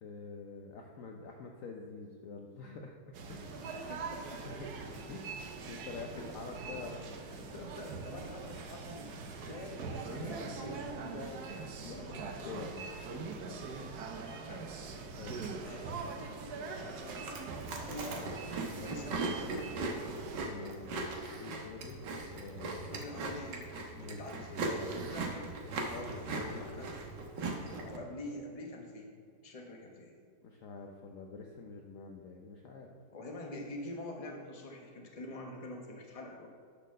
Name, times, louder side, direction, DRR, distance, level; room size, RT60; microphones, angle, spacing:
voice 1, 0.0-3.5 4.5-4.8 5.1-5.2 5.7-7.6 11.8-13.6 15.2-15.5 20.4-21.0 21.3-22.0 22.3-22.9 24.0-24.5 25.9-26.9 30.4-32.9, left 4 dB, 60° left, 1 dB, 0.9 m, -47 dB
sound 1, 3.1-20.4, right 4 dB, 70° right, 1.3 m, -43 dB
voice 2, 3.9-4.5 6.2-6.3 6.7-6.9 7.5-11.5 11.8-12.7 14.2-14.7 15.6-16.0 16.5-17.4 17.7-18.4 18.7-19.7 22.8-23.6 24.1-25.5 26.6-27.0 27.6-29.2 29.4-30.2 33.1-36.5, left 1 dB, 25° left, 1 dB, 1.0 m, -46 dB
Chewing mastication, 17.1-28.0, right 3 dB, 85° right, 1.7 m, -39 dB
10.0 x 4.3 x 6.4 m, 2.2 s
omnidirectional pair, 1.9 m